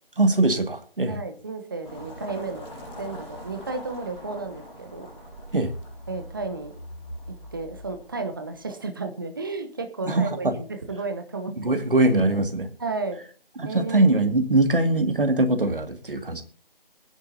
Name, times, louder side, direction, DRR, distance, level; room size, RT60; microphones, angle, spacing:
voice 1, 0.2-1.2 5.5-5.7 10.1-10.5 11.6-12.7 13.6-16.4, right 2 dB, 65° right, 7 dB, 2.2 m, -22 dB
voice 2, 1.1-2.6 3.0-5.1 6.1-6.7 7.5-11.7 12.8-13.2 13.6-14.2, right 3 dB, 20° right, 7 dB, 1.0 m, -33 dB
sound 1, 1.8-8.7, equal, 25° left, 7.6 m, -42 dB
21.0 x 10.5 x 2.7 m, 0.41 s
figure-of-eight pair, 155°, 29 cm